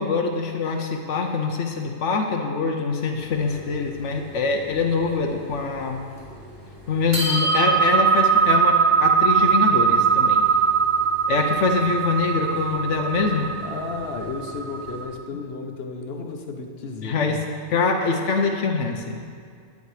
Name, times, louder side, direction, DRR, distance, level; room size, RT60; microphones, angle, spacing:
voice 1, 0.0-6.0 6.9-10.5 11.3-13.5 17.0-17.4 17.7-19.2, left 4 dB, 85° left, 3 dB, 1.1 m, -24 dB
sound 1, 3.2-5.2 5.5-5.6 6.0-6.6 6.9-15.0, right 6 dB, 55° right, 2.7 m, -21 dB
voice 2, 13.6-17.4, left 4 dB, 60° left, 4 dB, 1.2 m, -33 dB
11.0 x 9.3 x 4.9 m, 2.2 s
omnidirectional pair, 1.2 m